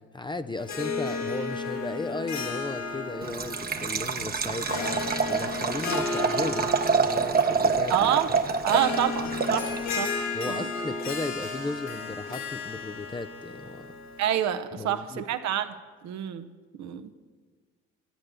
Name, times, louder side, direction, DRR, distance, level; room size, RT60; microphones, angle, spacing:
voice 1, 0.0-6.7 7.0-7.9 10.3-13.9 14.8-15.2, left 3 dB, 15° left, 10 dB, 0.5 m, -35 dB
Harp, 0.6-14.3, left 3 dB, 65° left, 1.6 m, -34 dB
Liquid, 3.2-10.0, right 5 dB, 30° right, 1.0 m, -27 dB
voice 2, 7.9-8.4 8.6-10.1 10.5-10.7 14.2-15.7 16.0-16.5 16.7-17.1, right 11 dB, 60° right, 9 dB, 0.9 m, -28 dB
12.5 x 8.6 x 6.6 m, 1.5 s
hypercardioid pair, 60°, 30 cm